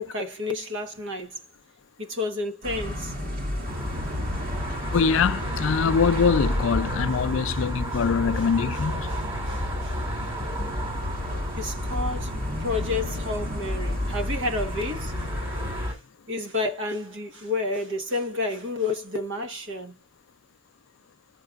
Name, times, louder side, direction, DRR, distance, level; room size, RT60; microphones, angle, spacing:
voice 1, 0.0-1.4 2.0-3.1 7.5-7.7 7.9-8.1 8.3-8.5 8.8-10.0 11.6-12.3 12.6-15.3 15.6-16.0 16.3-19.9, left 2 dB, 60° right, 1.1 m, -31 dB
sound 1, 2.6-15.9, left 1 dB, 45° right, 2.1 m, -33 dB
sound 2, 3.7-15.9, equal, 25° right, 2.5 m, -32 dB
voice 2, 4.9-9.1, left 6 dB, 65° left, 0.4 m, -23 dB
6.6 x 6.0 x 2.4 m
head